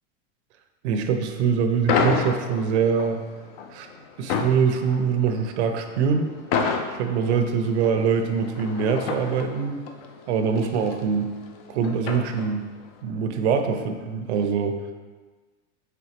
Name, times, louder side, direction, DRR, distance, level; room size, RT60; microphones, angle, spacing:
voice 1, 0.8-3.2 3.7-3.9 4.2-6.3 6.9-9.8 10.3-11.3 11.7-12.7 13.0-14.8, right 6 dB, 70° right, 6 dB, 0.5 m, -23 dB
sound 1, 1.9-12.8, left 5 dB, 55° left, 0.4 m, -30 dB
4.1 x 3.4 x 2.9 m, 1.3 s
supercardioid pair, 155°, 36 cm